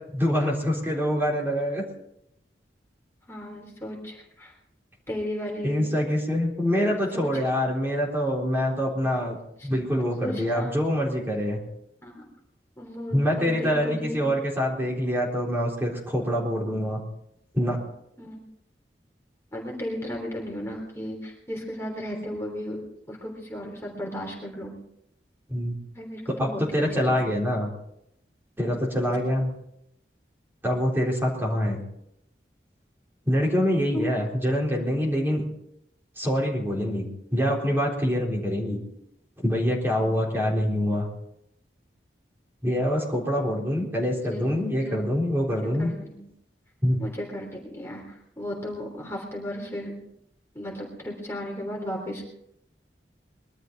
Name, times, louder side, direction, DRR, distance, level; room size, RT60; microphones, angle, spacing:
voice 1, 0.1-1.8 5.6-9.4 9.6-11.6 13.1-17.0 17.5-17.8 25.5-25.8 26.3-27.7 28.6-29.5 30.6-31.8 33.3-35.4 36.2-38.8 39.4-41.1 42.6-45.9 46.8-47.0, equal, 15° right, -3 dB, 3.8 m, -25 dB
voice 2, 3.3-4.5 5.1-5.9 6.8-7.3 9.6-9.7 10.2-10.7 12.0-12.3 12.8-14.2 18.2-18.4 19.5-22.8 23.1-24.7 25.9-27.4 33.9-34.4 44.2-45.0 45.8-46.2 47.0-49.9 50.5-52.2, equal, 15° left, -1 dB, 3.4 m, -35 dB
22.0 x 12.5 x 4.0 m, 0.77 s
head